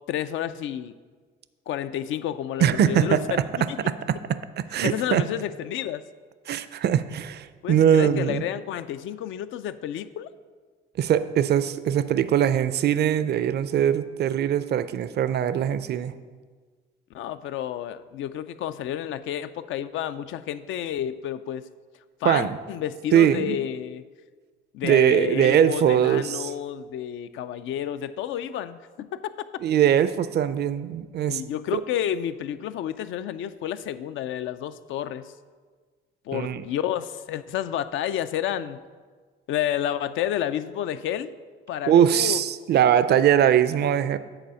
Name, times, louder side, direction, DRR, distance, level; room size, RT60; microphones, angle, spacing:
voice 1, 0.1-0.9 1.7-3.8 4.8-6.0 7.6-10.3 17.1-21.6 22.2-24.0 24.7-29.3 31.3-35.3 36.3-38.8 39.5-41.3 41.7-42.4, left 10 dB, 80° left, 12 dB, 0.4 m, -30 dB
voice 2, 2.6-3.4 3.9-5.3 6.5-8.4 11.0-16.1 22.2-22.6 23.1-23.6 24.8-26.5 29.6-31.4 31.7-31.8 36.3-36.6 41.9-44.2, right 9 dB, 55° right, 14 dB, 0.4 m, -21 dB
7.9 x 4.1 x 6.9 m, 1.5 s
cardioid pair, 90°, 20 cm